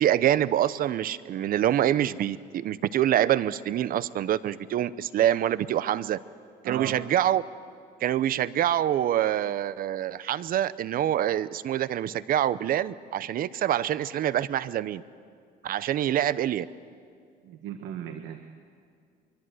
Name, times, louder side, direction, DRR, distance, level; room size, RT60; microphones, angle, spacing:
voice 1, 0.0-6.2 6.6-7.4 8.0-15.0 15.6-16.7, right 11 dB, 60° right, 17 dB, 0.7 m, -25 dB
voice 2, 6.6-7.0 17.4-18.4, right 11 dB, 85° right, 6 dB, 1.3 m, -36 dB
23.5 x 23.5 x 8.0 m, 2.3 s
cardioid pair, 110°, 17 cm